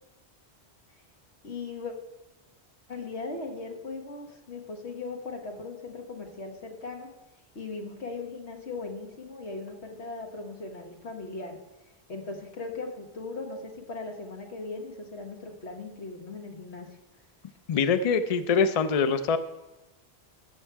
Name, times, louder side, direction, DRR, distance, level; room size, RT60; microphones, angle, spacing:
voice 1, 1.4-1.9 2.9-7.1 7.5-11.6 12.1-16.9, left 3 dB, 90° left, 2 dB, 1.7 m, -38 dB
voice 2, 17.7-19.4, left 5 dB, 45° left, 11 dB, 0.5 m, -24 dB
14.5 x 6.3 x 4.6 m, 1.0 s
omnidirectional pair, 1.1 m